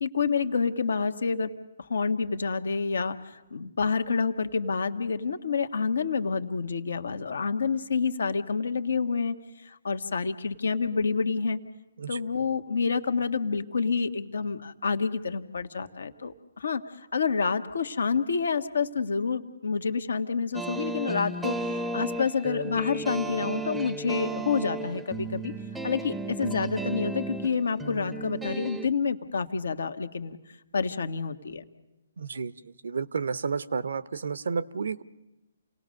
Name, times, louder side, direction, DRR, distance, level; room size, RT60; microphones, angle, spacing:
voice 1, 0.0-1.5 1.8-11.6 12.1-25.5 25.8-31.6, left 5 dB, 75° left, 8 dB, 1.4 m, -28 dB
sound 1, 20.5-28.9, right 2 dB, 5° right, 0.7 m, -34 dB
voice 2, 32.2-35.0, right 5 dB, 70° right, 16 dB, 0.8 m, -31 dB
29.0 x 18.5 x 6.5 m, 1.0 s
hypercardioid pair, 140°, 0 cm